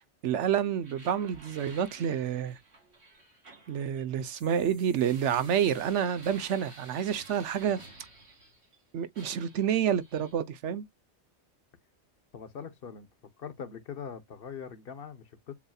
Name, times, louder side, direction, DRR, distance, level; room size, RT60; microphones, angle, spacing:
voice 1, 0.2-2.6 3.7-7.8 8.9-10.8, right 9 dB, 85° right, 1.1 m, -28 dB
sound 1, 0.8-8.8 9.1-10.4, right 2 dB, 65° right, 2.3 m, -53 dB
voice 2, 12.3-13.1 13.4-15.5, left 7 dB, 55° left, 1.1 m, -42 dB
7.2 x 2.7 x 2.3 m
omnidirectional pair, 1.2 m